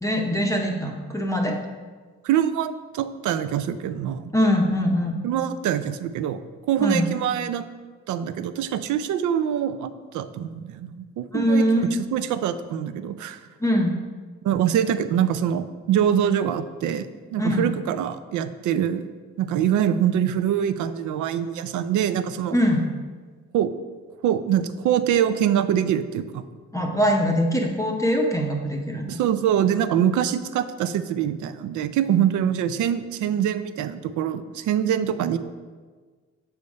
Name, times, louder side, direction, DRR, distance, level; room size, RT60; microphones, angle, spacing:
voice 1, 0.0-1.6 4.3-5.2 6.8-7.1 11.3-11.9 13.6-14.0 17.4-17.7 22.5-22.8 26.7-29.2, equal, 10° left, 0 dB, 0.6 m, -22 dB
voice 2, 2.2-4.4 5.2-6.4 6.7-7.7 8.1-13.4 14.4-19.1 19.4-22.6 23.5-23.7 24.2-26.4 29.1-35.4, right 9 dB, 75° right, 12 dB, 0.5 m, -24 dB
6.7 x 3.5 x 5.2 m, 1.5 s
cardioid pair, 90°, 30 cm